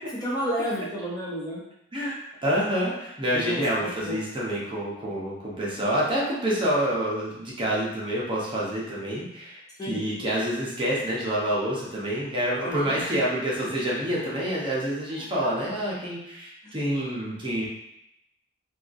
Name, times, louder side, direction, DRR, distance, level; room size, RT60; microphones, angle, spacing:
voice 1, 0.2-1.6 3.3-4.2 9.8-10.0 12.6-13.1 16.6-16.8, equal, 20° left, -6 dB, 0.5 m, -31 dB
voice 2, 1.9-9.6 9.9-17.7, equal, 25° right, -6 dB, 0.7 m, -27 dB
2.7 x 2.3 x 2.5 m, 0.82 s
head